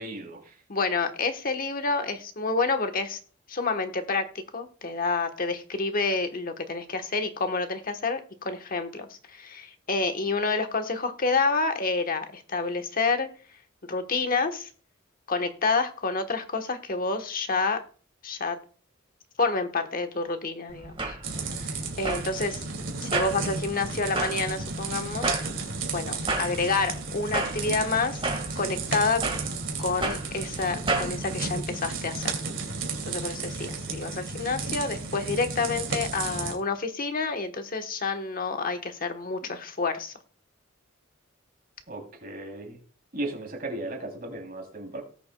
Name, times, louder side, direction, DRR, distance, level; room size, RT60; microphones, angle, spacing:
voice 1, 0.0-0.5 41.9-42.8 43.1-45.0, right 1 dB, 45° right, 2 dB, 3.2 m, -36 dB
voice 2, 0.7-3.2 3.5-4.3 4.5-13.3 13.9-14.7 15.3-17.8 18.2-18.6 19.4-20.9 21.4-22.6 23.0-25.4 25.9-28.2 28.5-29.2 29.8-32.3 33.1-40.1, left 3 dB, 45° left, 7 dB, 1.2 m, -28 dB
sound 1, 20.7-31.1, right 2 dB, 25° right, 1.7 m, -33 dB
sound 2, 21.2-36.5, right 4 dB, 70° right, 2.6 m, -33 dB
18.5 x 6.9 x 2.3 m, 0.41 s
head